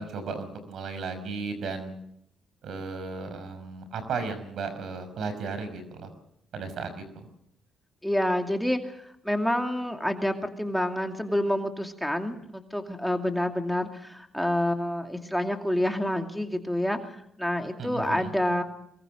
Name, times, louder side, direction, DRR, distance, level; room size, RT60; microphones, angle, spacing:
voice 1, 0.0-2.0 2.6-6.1 6.5-6.9 7.2-7.3 17.8-18.3, right 4 dB, 70° right, 10 dB, 5.5 m, -35 dB
voice 2, 8.0-18.6, left 1 dB, ahead, 4 dB, 2.5 m, -28 dB
24.0 x 22.0 x 6.5 m, 0.74 s
cardioid pair, 90°, 0 cm